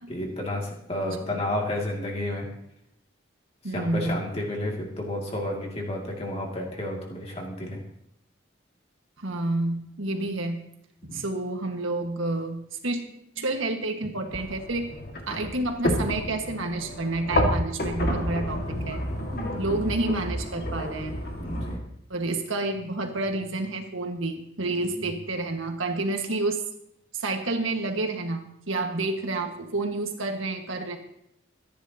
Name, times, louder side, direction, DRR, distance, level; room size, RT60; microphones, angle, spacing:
voice 1, 0.1-2.5 3.7-7.8 11.1-11.2 19.3-19.9 21.4-21.8 24.9-25.1, left 1 dB, 30° left, -1 dB, 2.5 m, -31 dB
voice 2, 1.1-1.4 3.6-4.2 9.2-10.6 11.0-13.0 13.4-14.9 15.3-19.0 19.6-21.2 22.1-26.6 27.1-31.0, right 2 dB, 80° right, 4 dB, 1.7 m, -29 dB
sound 1, 14.3-21.8, equal, 50° left, 2.0 m, -30 dB
24.5 x 10.5 x 2.9 m, 0.76 s
head